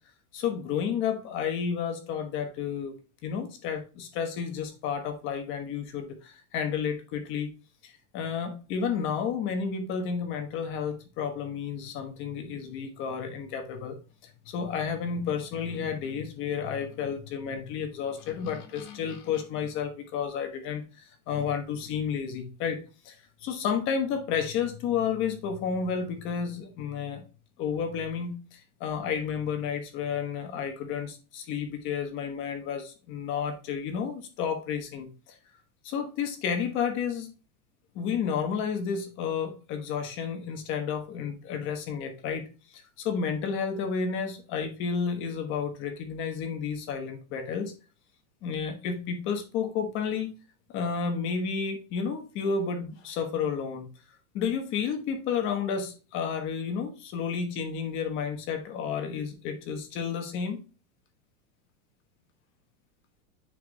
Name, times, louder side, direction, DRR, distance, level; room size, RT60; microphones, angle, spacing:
voice 1, 0.3-7.5 7.8-14.0 14.2-20.8 21.3-22.8 23.0-23.2 23.4-27.2 27.6-35.3 35.8-37.3 37.9-42.4 43.0-47.7 48.4-50.4 50.7-53.9 54.3-60.6, left 6 dB, 25° left, 1.2 m, -31 dB
9.7 x 4.6 x 2.3 m
supercardioid pair, 170°, 43 cm